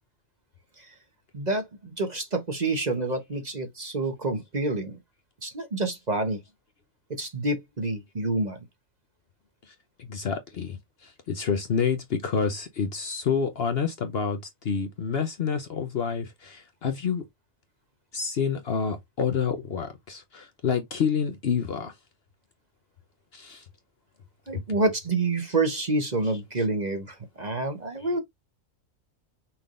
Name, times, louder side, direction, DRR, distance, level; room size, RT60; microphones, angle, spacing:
voice 1, 1.3-5.0 5.4-6.4 7.1-8.6 24.5-28.2, right 2 dB, 35° right, 1.1 m, -28 dB
voice 2, 9.7-17.2 18.1-21.9 23.3-23.6 24.7-24.8 26.2-26.7 28.0-28.1, left 6 dB, 55° left, 0.9 m, -29 dB
5.9 x 3.5 x 2.5 m
omnidirectional pair, 1.4 m